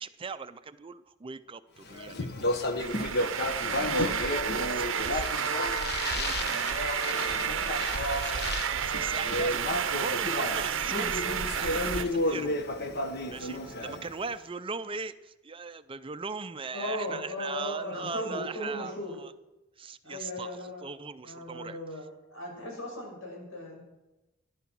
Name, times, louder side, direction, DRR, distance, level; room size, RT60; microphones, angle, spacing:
voice 1, 0.0-2.5 2.9-5.6 6.1-11.2 11.5-12.6 13.3-19.3 19.8-21.8, right 4 dB, 25° right, 13 dB, 0.4 m, -40 dB
Speech, 1.9-14.3, left 1 dB, 50° left, 1.1 m, -32 dB
sound 1, 2.8-12.1, right 7 dB, 65° right, 0.7 m, -31 dB
voice 2, 3.6-4.1 16.7-19.2 20.0-20.9 21.2-22.0 22.3-23.9, left 1 dB, 80° left, 0 dB, 6.3 m, -37 dB
14.0 x 11.5 x 6.1 m, 1.0 s
head